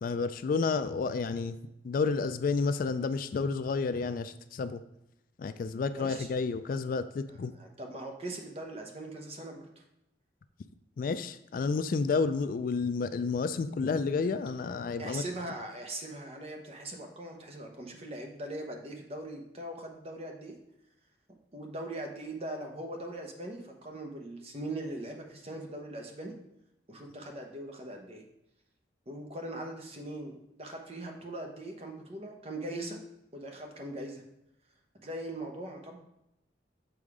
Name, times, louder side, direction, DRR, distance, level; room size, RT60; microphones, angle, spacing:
voice 1, 0.0-1.6 1.8-4.8 5.4-7.5 11.0-15.2, left 4 dB, 50° left, 12 dB, 0.3 m, -30 dB
voice 2, 5.9-6.3 7.3-9.8 15.0-20.6 21.5-26.3 26.9-28.2 29.1-33.0 33.3-34.2 35.0-36.0, right 1 dB, 35° right, 2 dB, 0.9 m, -40 dB
7.0 x 3.6 x 4.8 m, 0.85 s
head